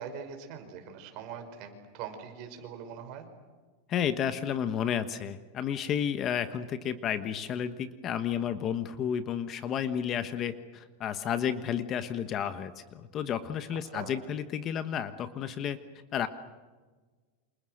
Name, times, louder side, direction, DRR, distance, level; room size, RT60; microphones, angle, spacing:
voice 1, 0.0-3.3 13.7-14.1, right 7 dB, 40° right, 6 dB, 5.5 m, -42 dB
voice 2, 3.9-15.8 16.1-16.3, left 8 dB, 25° left, 11 dB, 1.2 m, -32 dB
30.0 x 27.5 x 6.6 m, 1.4 s
supercardioid pair, 165°, 0 cm